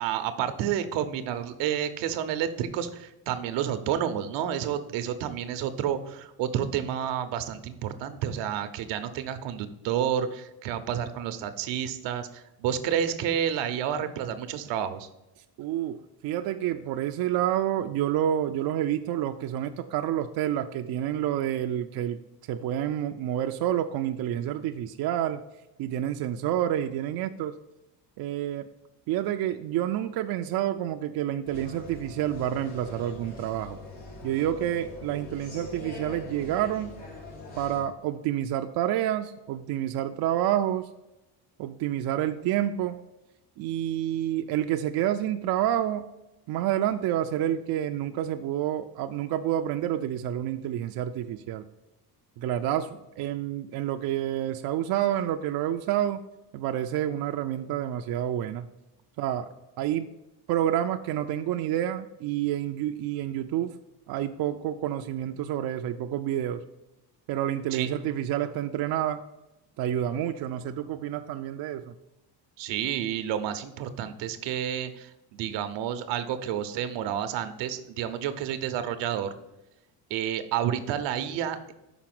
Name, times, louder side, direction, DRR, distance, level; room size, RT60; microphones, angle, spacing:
voice 1, 0.0-15.1 67.7-67.9 72.6-79.3 80.1-81.7, right 9 dB, 80° right, 10 dB, 0.8 m, -30 dB
voice 2, 15.6-22.2 22.5-25.4 25.8-27.6 28.2-28.7 29.1-33.8 34.2-37.0 37.6-40.9 41.6-43.0 43.6-46.1 46.5-51.6 52.4-56.2 56.5-58.7 59.2-59.5 59.8-60.1 60.5-63.8 64.1-66.6 67.3-69.2 69.8-72.0, right 11 dB, 60° right, 6 dB, 0.5 m, -28 dB
sound 1, 31.4-37.8, left 2 dB, 85° left, 2.7 m, -43 dB
6.0 x 4.2 x 5.9 m, 0.96 s
cardioid pair, 110°, 43 cm